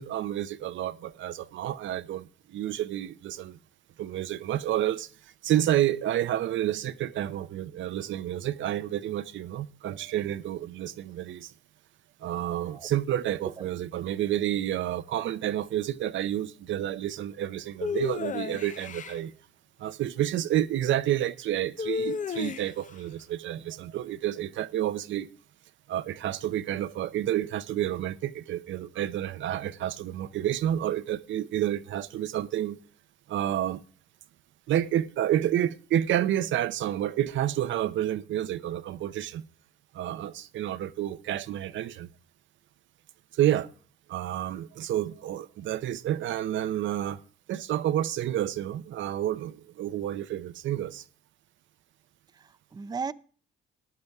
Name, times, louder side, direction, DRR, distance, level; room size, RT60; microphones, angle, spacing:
voice 1, 0.0-3.6 4.0-5.1 5.4-11.5 12.2-19.3 19.8-25.3 25.9-32.8 33.3-33.8 34.7-39.4 39.9-42.1 43.3-43.7 44.1-47.2 47.5-51.0, right 12 dB, 75° right, 0.7 m, -29 dB
sound 1, 17.8-19.2 21.8-22.9, left 6 dB, 40° left, 0.6 m, -32 dB
voice 2, 52.3-53.1, right 5 dB, 20° right, 0.5 m, -37 dB
13.5 x 10.5 x 3.5 m
cardioid pair, 90°, 20 cm